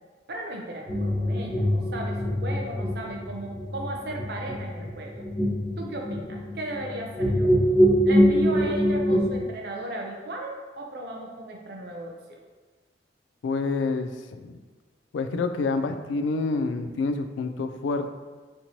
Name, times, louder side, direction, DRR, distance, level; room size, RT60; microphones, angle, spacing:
voice 1, 0.3-5.2 5.8-7.5 8.0-12.2, right 1 dB, 60° right, 0 dB, 0.6 m, -36 dB
sound 1, 0.9-9.4, equal, 30° left, 0.9 m, -24 dB
voice 2, 13.4-14.6 15.1-18.1, left 3 dB, 80° left, 8 dB, 0.3 m, -28 dB
4.4 x 2.9 x 2.7 m, 1.3 s
head